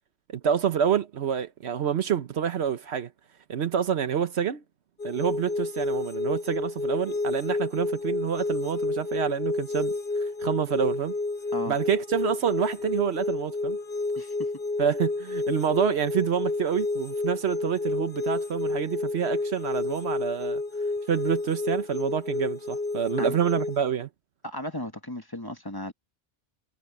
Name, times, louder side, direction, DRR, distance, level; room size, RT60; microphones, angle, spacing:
voice 1, 0.3-3.1 3.5-4.6 5.0-9.9 10.4-11.1 11.7-13.8 14.8-20.6 21.1-24.1, right 8 dB, 70° right, 1.1 m, -27 dB
sound 1, 5.0-23.8, left 2 dB, 60° left, 5.2 m, -30 dB
voice 2, 14.2-14.5 23.2-23.4 24.4-25.9, left 1 dB, 20° left, 1.6 m, -35 dB
omnidirectional pair, 1.2 m